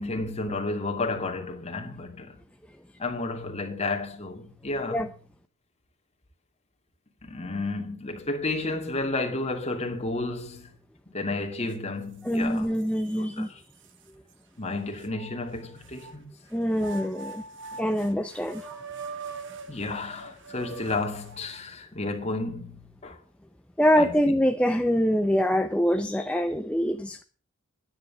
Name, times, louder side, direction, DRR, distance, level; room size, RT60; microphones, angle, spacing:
voice 1, 0.0-2.4 3.0-5.1 7.2-10.7 11.1-12.7 13.2-13.6 14.6-16.3 19.7-23.2 24.0-24.3, left 2 dB, 30° left, 2.4 m, -32 dB
sound 1, 11.7-11.8 12.3-13.2 13.8-13.9 15.0-16.1 16.7-21.6, right 4 dB, 60° right, 1.4 m, -42 dB
voice 2, 12.2-13.5 16.5-17.4 17.8-18.8 23.8-27.2, equal, 5° left, 0.5 m, -24 dB
11.5 x 9.8 x 7.1 m
head